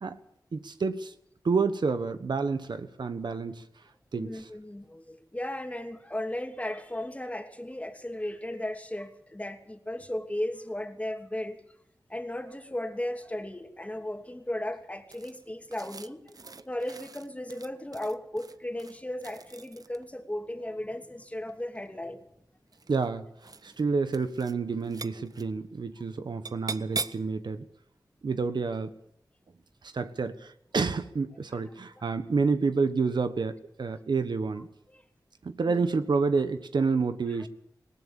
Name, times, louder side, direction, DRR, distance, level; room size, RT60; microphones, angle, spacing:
voice 1, 0.5-1.1 1.4-3.6 4.1-4.5 22.9-23.3 23.6-27.7 28.2-28.9 29.8-34.7 35.4-37.5, right 4 dB, 80° right, 10 dB, 1.3 m, -29 dB
voice 2, 4.1-11.6 12.1-22.2 32.0-32.1 34.9-35.0 35.7-35.9, left 1 dB, 20° left, 5 dB, 2.7 m, -36 dB
sound 1, 15.1-20.1 21.3-22.0 22.7-23.1 23.4-23.8 24.1-24.6 24.8-25.5 26.5-27.3, right 4 dB, 55° right, 0.8 m, -41 dB
20.0 x 18.5 x 7.1 m, 0.73 s
cardioid pair, 50°, 7 cm